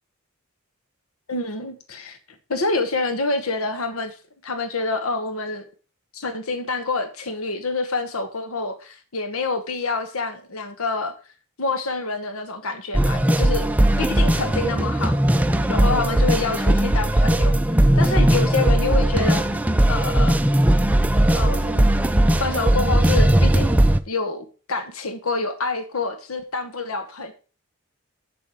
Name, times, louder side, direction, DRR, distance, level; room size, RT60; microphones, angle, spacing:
voice 1, 1.3-2.2 2.5-4.2 4.4-5.6 6.1-11.1 11.6-13.6 14.0-17.6 18.0-19.6 19.9-20.4 21.3-21.9 22.4-23.8 24.1-27.3, left 3 dB, 75° left, 8 dB, 1.1 m, -27 dB
sound 1, 12.9-24.0, right 1 dB, 5° right, 0.4 m, -18 dB
7.6 x 7.2 x 4.9 m, 0.36 s
head